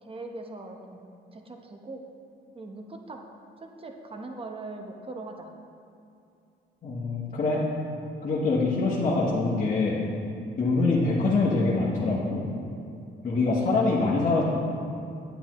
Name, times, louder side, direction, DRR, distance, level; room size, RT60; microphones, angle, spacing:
voice 1, 0.0-2.0 2.5-3.2 3.6-5.5, right 2 dB, 30° right, 3 dB, 1.0 m, -41 dB
voice 2, 6.8-7.6 8.2-10.0 10.6-12.4 13.2-14.4, left 3 dB, 45° left, -6 dB, 1.3 m, -24 dB
9.0 x 8.8 x 3.1 m, 2.6 s
cardioid pair, 90°, 19 cm